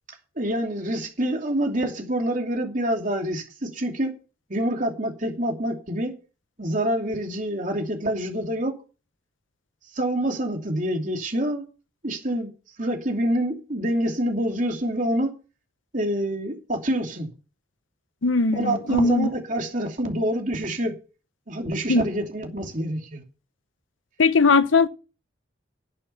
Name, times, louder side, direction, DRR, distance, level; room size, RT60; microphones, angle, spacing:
voice 1, 0.4-4.1 4.5-6.1 6.6-8.7 9.9-11.7 12.0-12.5 12.8-15.3 15.9-17.3 18.6-20.9 21.5-23.2, right 1 dB, 40° right, 2.8 m, -26 dB
voice 2, 18.2-19.3 21.9-22.1 24.2-24.9, left 4 dB, 80° left, 0.9 m, -19 dB
11.0 x 9.0 x 6.9 m
head